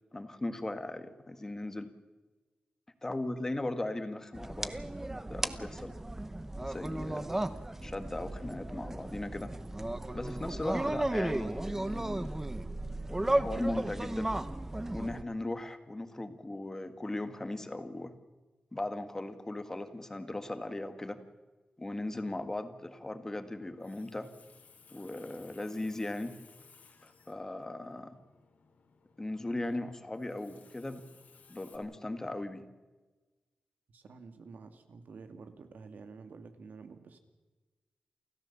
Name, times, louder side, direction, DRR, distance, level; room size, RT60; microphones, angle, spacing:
voice 1, 0.1-1.9 3.0-4.7 5.3-6.0 6.6-7.3 7.8-9.5 10.1-12.3 13.2-14.3 14.9-18.1 18.7-21.2 21.8-24.3 24.9-26.3 27.0-28.2 29.2-31.0 31.5-32.7, left 2 dB, 15° left, 9 dB, 1.7 m, -38 dB
sound 1, 4.3-15.2, right 1 dB, 15° right, 0.9 m, -35 dB
Water tap faucet, 23.6-31.8, left 5 dB, 70° left, 3.5 m, -61 dB
voice 2, 33.9-37.2, right 4 dB, 80° right, 7 dB, 2.3 m, -50 dB
29.0 x 14.0 x 7.2 m, 1.2 s
wide cardioid pair, 170°, 3 cm